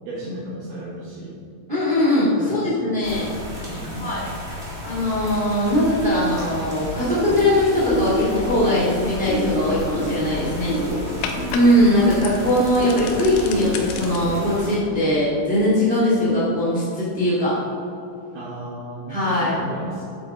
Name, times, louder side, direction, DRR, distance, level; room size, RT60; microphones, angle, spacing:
voice 1, 0.0-1.4 2.4-3.4 3.8-4.2 10.7-12.0 16.1-16.4 18.3-20.1, right 1 dB, 70° right, -6 dB, 2.9 m, -35 dB
voice 2, 1.7-3.3 4.0-4.2 4.8-10.8 11.5-17.6 19.1-19.6, left 1 dB, 85° right, -8 dB, 0.4 m, -20 dB
sound 1, 3.0-14.8, left 1 dB, 35° right, 0.9 m, -34 dB
sound 2, 5.0-14.2, left 4 dB, 85° left, 3.2 m, -36 dB
sound 3, 7.2-7.4 7.9-8.2 8.6-8.8 9.3-9.5 9.9-10.1 10.7-10.9 11.4-11.5 12.0-12.2 12.8-13.0 13.5-13.7 14.2-14.4 14.7-15.1 15.6-15.7 16.3-16.4, equal, 65° left, 3.7 m, -28 dB
11.0 x 8.2 x 3.6 m, 2.8 s
omnidirectional pair, 5.2 m